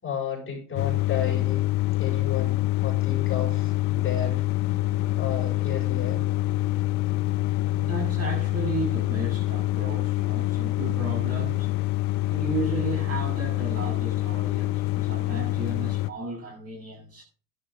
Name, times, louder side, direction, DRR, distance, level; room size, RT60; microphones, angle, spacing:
voice 1, 0.0-1.7 2.0-4.4 5.2-6.2 6.8-6.9, left 6 dB, 25° left, 5.9 m, -33 dB
sound 1, 0.8-16.1, left 18 dB, 55° left, 0.8 m, -26 dB
voice 2, 7.7-11.7 12.3-17.2, right 3 dB, 30° right, 7.9 m, -34 dB
12.0 x 11.0 x 3.7 m
supercardioid pair, 120°, 47 cm